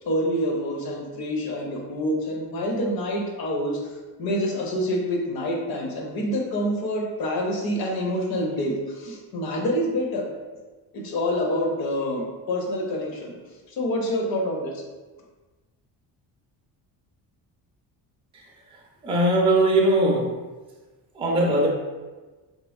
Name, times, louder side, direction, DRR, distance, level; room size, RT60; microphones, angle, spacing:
voice 1, 0.1-3.9 4.2-10.3 10.9-13.3 13.7-14.7, equal, 60° left, 0 dB, 0.7 m, -27 dB
voice 2, 18.3-20.3 21.1-21.7, right 1 dB, 15° right, -2 dB, 0.4 m, -21 dB
3.1 x 2.5 x 2.3 m, 1.3 s
cardioid pair, 115°, 41 cm